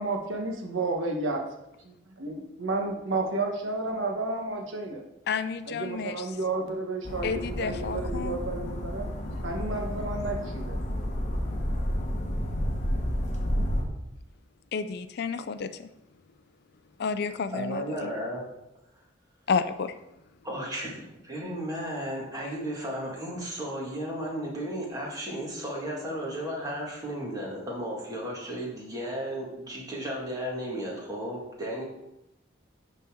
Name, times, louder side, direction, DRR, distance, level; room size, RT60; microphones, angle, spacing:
voice 1, 0.0-1.4 1.8-5.0 5.7-9.1 9.4-10.8, right 2 dB, 80° right, 2 dB, 1.2 m, -31 dB
voice 2, 5.3-6.3 7.2-8.4 14.7-15.9 17.0-18.1 19.5-19.9, left 5 dB, 55° left, 11 dB, 0.4 m, -31 dB
sound 1, 7.0-13.8, equal, 35° left, 1.1 m, -31 dB
voice 3, 17.5-18.4 20.4-31.8, equal, 20° right, -3 dB, 1.9 m, -34 dB
11.0 x 4.0 x 3.7 m, 0.87 s
head